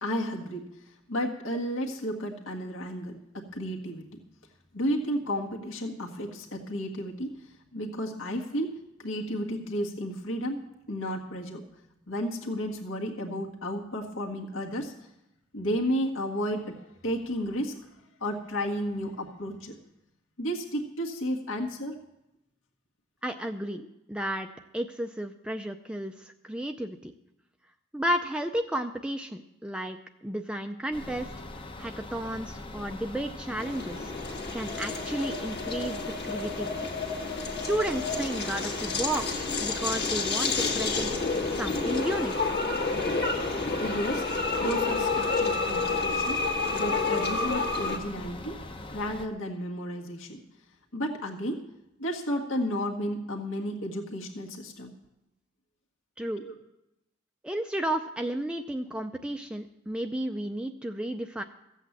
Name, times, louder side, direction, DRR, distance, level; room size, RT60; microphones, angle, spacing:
voice 1, 0.0-0.7 1.1-4.0 4.7-11.6 12.1-14.9 15.5-17.8 18.2-19.7 20.4-22.0 43.8-46.4 46.7-48.6 48.9-50.4 50.9-51.6 52.0-54.9 56.4-56.5, equal, 70° left, 0 dB, 1.7 m, -32 dB
voice 2, 23.2-24.5 24.7-27.1 27.9-30.0 30.2-31.3 31.8-34.1 34.5-36.8 37.7-41.1 41.6-42.5 56.2-56.4 57.4-61.4, right 1 dB, 5° right, 5 dB, 0.5 m, -32 dB
sound 1, 30.9-49.3, left 2 dB, 25° left, 0.8 m, -42 dB
sound 2, 33.6-48.0, left 3 dB, 50° left, 1.7 m, -29 dB
15.0 x 8.2 x 7.3 m, 0.88 s
head